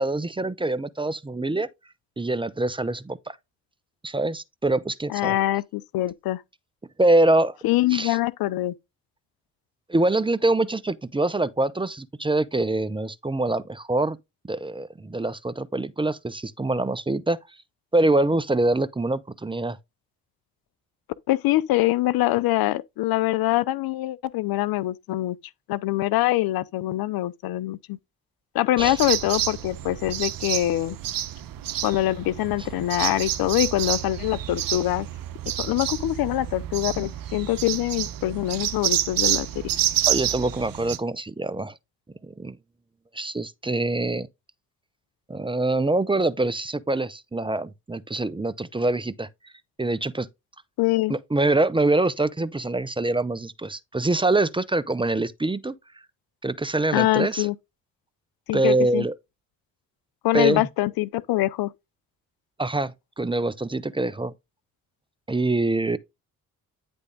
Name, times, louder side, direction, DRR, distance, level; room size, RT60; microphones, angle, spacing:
voice 1, 0.0-1.7 2.2-3.4 4.0-5.4 7.0-7.6 7.9-8.2 9.9-14.2 14.5-17.4 17.9-19.8 28.8-29.0 40.0-41.8 42.2-42.6 43.1-44.3 45.3-49.3 49.8-50.3 51.1-55.7 56.4-57.5 58.5-59.1 60.3-60.6 62.6-64.3 65.3-66.0, right 2 dB, 15° right, 0.7 m, -24 dB
voice 2, 5.1-6.4 7.6-8.7 21.3-25.4 25.7-28.0 28.5-31.0 31.8-35.1 35.6-39.7 50.8-51.1 56.9-57.5 58.5-59.1 60.2-61.7, left 16 dB, 70° left, 0.6 m, -24 dB
sound 1, 28.8-41.0, right 12 dB, 60° right, 0.9 m, -29 dB
9.6 x 3.5 x 3.9 m
supercardioid pair, 55°, 38 cm